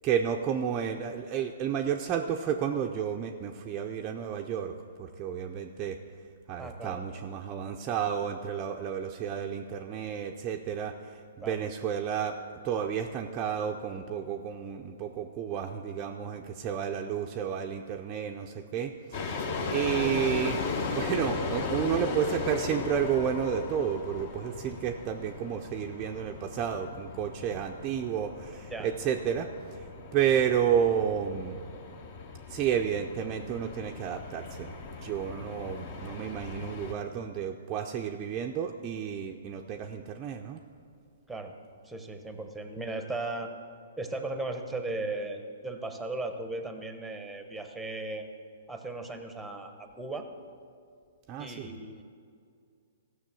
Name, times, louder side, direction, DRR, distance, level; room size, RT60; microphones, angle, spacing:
voice 1, 0.0-6.0 6.5-12.4 12.6-20.6 20.9-29.8 30.1-31.6 32.5-34.7 35.0-40.6 51.3-51.7, right 8 dB, 25° right, 2 dB, 0.5 m, -31 dB
voice 2, 6.6-7.0 11.4-11.6 28.7-28.9 41.3-41.6 41.8-43.5 44.0-48.3 48.7-50.3 51.4-52.0, right 2 dB, ahead, 6 dB, 0.9 m, -37 dB
sound 1, 19.1-36.9, left 4 dB, 45° left, 1.1 m, -37 dB
14.0 x 6.3 x 7.6 m, 2.4 s
hypercardioid pair, 155°, 0 cm